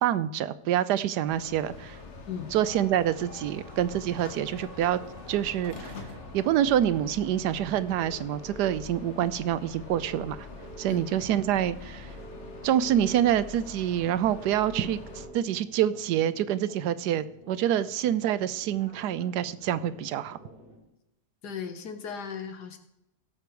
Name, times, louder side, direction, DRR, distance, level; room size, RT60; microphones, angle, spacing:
voice 1, 0.0-2.0 2.5-5.0 5.3-6.0 6.3-10.5 10.8-12.1 12.6-20.4, right 11 dB, 85° right, 15 dB, 1.2 m, -26 dB
sound 1, 1.2-15.3, left 3 dB, 45° left, 1.6 m, -45 dB
sound 2, 3.0-20.8, equal, 35° right, 3.0 m, -52 dB
sound 3, 7.9-8.9 9.9-11.1 12.2-13.3 14.4-15.4, right 3 dB, 65° right, 1.4 m, -46 dB
voice 2, 21.4-22.8, left 7 dB, 80° left, 7 dB, 1.8 m, -37 dB
16.5 x 6.9 x 4.6 m, 0.88 s
omnidirectional pair, 1.7 m